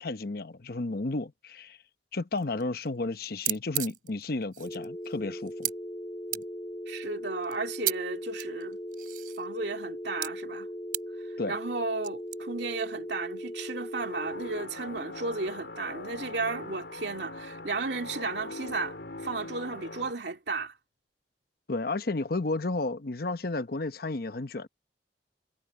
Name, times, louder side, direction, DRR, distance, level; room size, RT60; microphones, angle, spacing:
voice 1, 0.0-1.8 2.1-5.7 11.4-11.5 21.7-24.7, left 2 dB, 55° left, 0.9 m, -32 dB
sound 1, 2.4-2.9 3.1-3.2 3.4-5.7 6.3-6.4 7.4-7.9 8.4-9.5 10.2-10.3 10.9-11.0 12.0-12.4, right 14 dB, 50° right, 3.6 m, -33 dB
sound 2, 4.6-14.6, equal, 25° left, 3.2 m, -39 dB
voice 2, 6.9-8.8 9.4-10.7 11.5-19.0 19.2-20.7, right 3 dB, 70° right, 2.7 m, -34 dB
sound 3, 14.0-20.1, left 2 dB, 70° left, 4.0 m, -41 dB
head